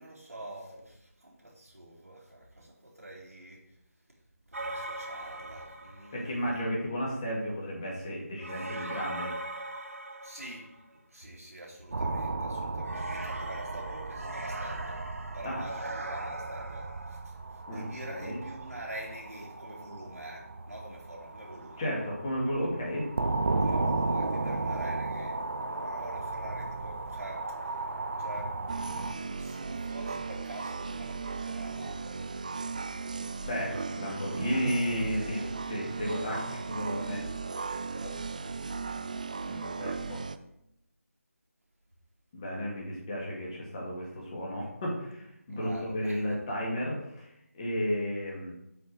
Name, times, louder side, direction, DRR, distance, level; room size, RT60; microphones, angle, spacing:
voice 1, 0.0-3.8 4.5-6.4 10.2-15.0 15.3-21.9 23.6-25.4 25.7-32.3 45.5-46.3, right 1 dB, 90° right, -7 dB, 2.7 m, -46 dB
sound 1, 4.5-6.3 8.4-10.9 12.8-17.2, right 2 dB, 70° right, 1.3 m, -40 dB
voice 2, 6.1-9.3 15.4-15.6 17.7-18.4 21.8-23.1 33.4-37.2 37.9-38.2 39.4-40.2 42.3-48.5, equal, 20° left, -3 dB, 2.1 m, -33 dB
sound 2, 11.9-29.1, right 3 dB, 50° right, 0.8 m, -35 dB
sound 3, 28.7-40.4, right 4 dB, 30° right, 0.3 m, -36 dB
8.0 x 4.8 x 6.2 m, 0.81 s
figure-of-eight pair, 160°, 8 cm